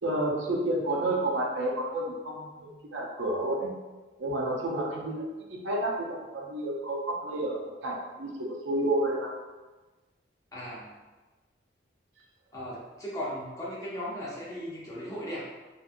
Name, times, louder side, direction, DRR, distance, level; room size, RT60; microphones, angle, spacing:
voice 1, 0.0-3.7 4.2-5.2 5.5-9.3, right 1 dB, 80° right, -1 dB, 0.6 m, -30 dB
voice 2, 10.5-10.9 12.5-15.4, equal, 20° left, -7 dB, 0.6 m, -37 dB
2.6 x 2.5 x 2.5 m, 1.2 s
head